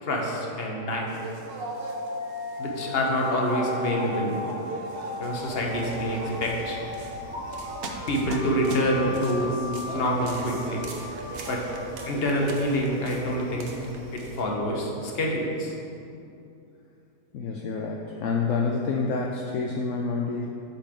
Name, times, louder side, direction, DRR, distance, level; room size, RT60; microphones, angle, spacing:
voice 1, 0.0-1.2 2.6-4.4 5.2-6.8 8.1-9.6 9.9-10.9 11.5-11.6 12.1-13.7 14.1-15.7, equal, 45° left, -1 dB, 0.9 m, -26 dB
sound 1, 1.1-13.3, right 2 dB, 85° right, 0.5 m, -40 dB
sound 2, 1.6-12.5, left 3 dB, 15° left, 0.6 m, -37 dB
sound 3, 5.3-14.4, right 2 dB, 55° right, 0.9 m, -42 dB
voice 2, 17.3-20.5, left 4 dB, 70° left, 0 dB, 0.7 m, -28 dB
8.3 x 5.3 x 3.4 m, 2.6 s
omnidirectional pair, 1.7 m